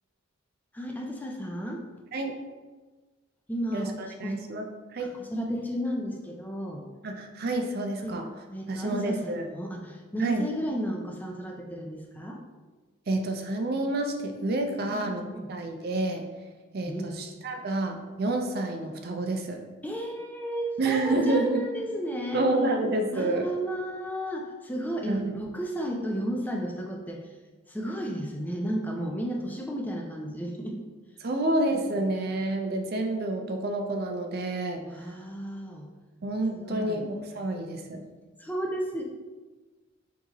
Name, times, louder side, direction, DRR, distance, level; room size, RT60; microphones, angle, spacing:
voice 1, 0.7-1.8 3.5-4.4 5.0-6.8 8.0-8.2 8.5-12.4 14.8-15.5 16.9-17.2 19.8-22.5 23.1-27.4 27.7-30.8 31.7-31.8 34.8-35.9 36.5-37.0 38.4-39.0, equal, 10° left, 0 dB, 0.4 m, -33 dB
voice 2, 3.7-4.7 4.9-5.2 7.0-8.2 8.7-9.4 10.2-10.5 13.1-15.2 15.5-16.2 16.7-19.6 20.8-21.7 22.3-23.5 25.1-25.3 31.2-34.8 36.2-38.0, right 2 dB, 50° right, 4 dB, 0.5 m, -29 dB
6.0 x 2.7 x 2.9 m, 1.3 s
head